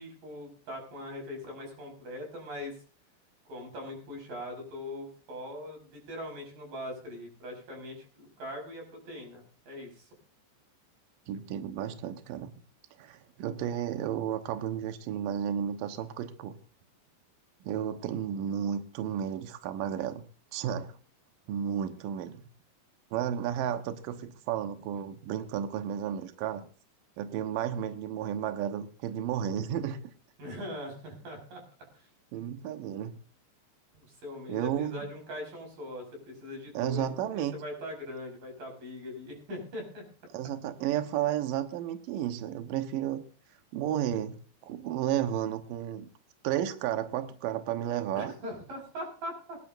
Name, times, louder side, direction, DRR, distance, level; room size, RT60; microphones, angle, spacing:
voice 1, 0.0-2.8 3.5-10.1 30.4-31.6 31.9-32.0 33.9-40.0 48.2-49.6, left 1 dB, 45° right, 1 dB, 7.3 m, -41 dB
voice 2, 11.3-12.5 13.0-16.5 17.6-20.2 20.5-21.0 21.5-22.5 23.1-26.7 27.2-30.0 32.3-33.2 34.5-35.1 36.7-37.6 40.3-43.2 43.7-46.1 46.4-48.3, right 10 dB, 90° right, 8 dB, 2.0 m, -32 dB
24.5 x 10.5 x 2.6 m, 0.39 s
omnidirectional pair, 5.6 m